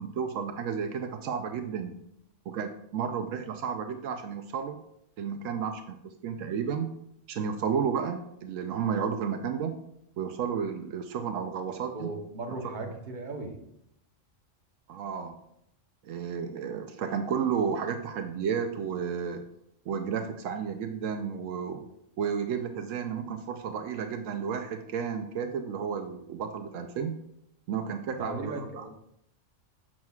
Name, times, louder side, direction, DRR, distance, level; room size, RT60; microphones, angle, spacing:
voice 1, 0.0-2.0 2.5-4.8 5.2-6.0 6.2-6.9 7.3-9.7 10.2-12.1 14.9-15.4 16.0-19.4 19.9-21.8 22.2-27.1 27.7-28.8, right 7 dB, 80° right, 7 dB, 0.9 m, -32 dB
voice 2, 11.8-13.6 28.2-29.0, right 2 dB, 40° right, 2 dB, 1.1 m, -37 dB
7.4 x 6.0 x 2.3 m, 0.76 s
omnidirectional pair, 1.3 m